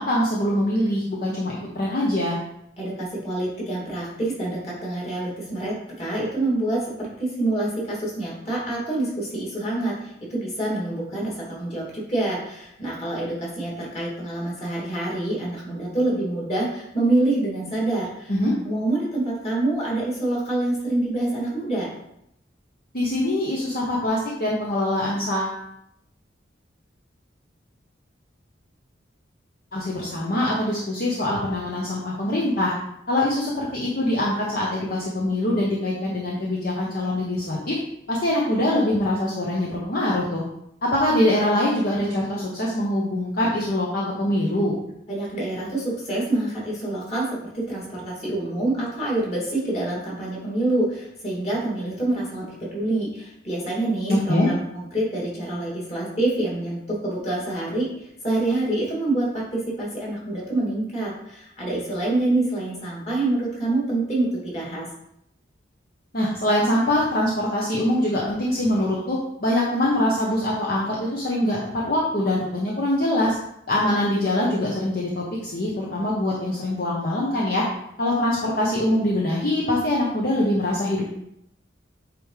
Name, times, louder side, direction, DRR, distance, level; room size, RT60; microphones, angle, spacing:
voice 1, 0.0-2.4 18.3-18.5 22.9-25.6 29.7-32.7 33.1-37.7 38.1-40.4 40.8-44.7 54.1-54.5 66.1-73.4 73.7-77.6 78.0-81.0, left 1 dB, 50° left, -4 dB, 1.0 m, -23 dB
voice 2, 2.8-18.3 18.6-21.9 45.1-64.9, right 2 dB, 35° left, -5 dB, 2.4 m, -26 dB
8.6 x 3.6 x 3.3 m, 0.78 s
head